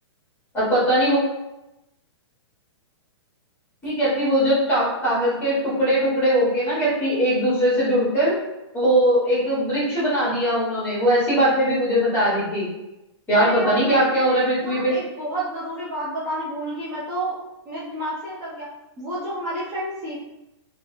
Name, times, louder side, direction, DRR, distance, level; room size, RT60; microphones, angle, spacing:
voice 1, 0.5-1.2 3.8-8.4 8.7-12.7 13.3-14.9, equal, 10° left, -8 dB, 1.1 m, -20 dB
voice 2, 13.3-17.3 17.7-18.7 19.0-20.2, right 1 dB, 25° right, -9 dB, 0.6 m, -30 dB
3.0 x 2.0 x 3.0 m, 0.95 s
hypercardioid pair, 165°, 15 cm